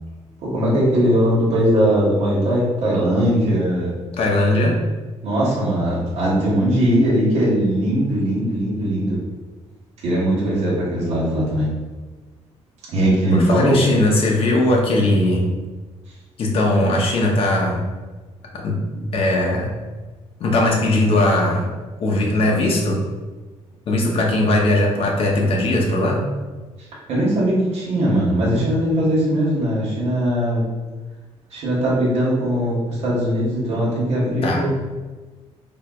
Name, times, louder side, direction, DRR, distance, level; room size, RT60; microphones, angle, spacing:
voice 1, 0.4-3.9 5.2-9.2 10.0-11.7 12.9-13.8 27.1-30.7 31.5-34.8, right 1 dB, 70° right, -7 dB, 0.9 m, -20 dB
voice 2, 4.2-4.8 13.3-15.5 16.4-17.8 18.6-18.8 19.1-19.7 20.4-21.7 22.0-23.0 23.9-26.2 34.4-34.6, left 1 dB, 55° left, -1 dB, 0.7 m, -19 dB
4.3 x 2.2 x 2.3 m, 1.3 s
cardioid pair, 145°, 12 cm